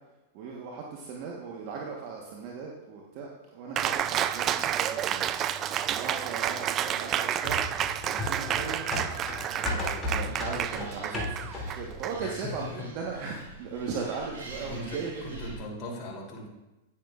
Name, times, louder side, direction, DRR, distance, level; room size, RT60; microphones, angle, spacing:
voice 1, 0.3-5.3 5.9-7.6 8.1-8.9 9.5-11.4 11.7-15.4, right 5 dB, 50° right, -2 dB, 1.2 m, -38 dB
Cheering, 3.8-12.7, right 10 dB, 35° right, 0.4 m, -30 dB
sound 1, 7.4-11.9 12.3-12.4, left 2 dB, 15° left, 2.6 m, -34 dB
Animal, 9.7-15.5, right 3 dB, 90° right, 3.0 m, -46 dB
voice 2, 12.2-13.2 14.6-16.5, left 2 dB, 35° left, -3 dB, 3.1 m, -39 dB
9.9 x 9.6 x 2.5 m, 1.0 s
hypercardioid pair, 115°, 0 cm